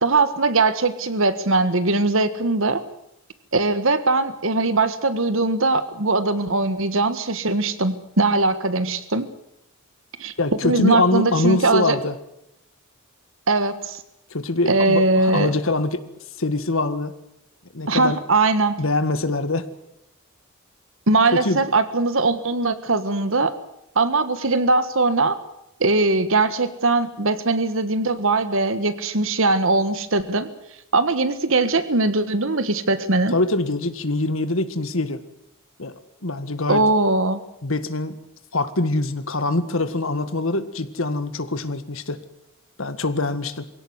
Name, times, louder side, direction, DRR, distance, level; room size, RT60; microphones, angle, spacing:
voice 1, 0.0-2.8 3.5-9.3 10.2-10.3 10.6-12.0 13.5-14.0 14.7-15.5 17.9-18.8 21.1-23.5 23.9-25.4 25.8-30.5 30.9-33.3 36.7-37.4, right 3 dB, 65° right, 13 dB, 1.5 m, -20 dB
voice 2, 10.4-12.1 14.3-16.0 16.4-17.1 17.7-18.2 18.8-19.7 21.3-21.6 33.3-35.2 35.8-35.9 36.2-36.8 37.6-38.2 38.5-42.2 42.8-43.7, left 2 dB, 65° left, 11 dB, 1.8 m, -23 dB
22.5 x 17.0 x 9.5 m, 0.82 s
head